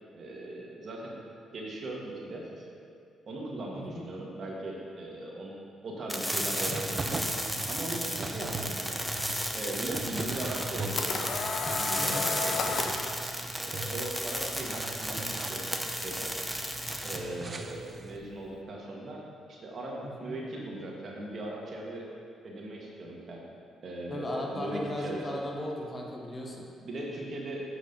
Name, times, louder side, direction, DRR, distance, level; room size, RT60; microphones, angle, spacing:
voice 1, 0.1-1.2 1.5-2.7 3.2-5.6 5.8-7.0 7.7-9.0 9.5-11.2 11.7-12.8 13.6-16.3 17.0-19.2 19.5-22.0 22.4-23.4 23.8-25.4 26.8-27.6, right 1 dB, 50° right, -2 dB, 1.7 m, -39 dB
voice 2, 3.7-4.1 12.0-12.3 20.0-20.4 24.1-26.7, left 1 dB, 25° left, -1 dB, 1.1 m, -36 dB
sound 1, 6.1-17.2, equal, ahead, 0.8 m, -34 dB
sound 2, 6.3-18.2, right 3 dB, 35° right, 0.6 m, -40 dB
sound 3, 10.5-13.1, left 4 dB, 55° left, 0.7 m, -32 dB
8.1 x 4.9 x 5.3 m, 2.4 s
cardioid pair, 90°, 0 cm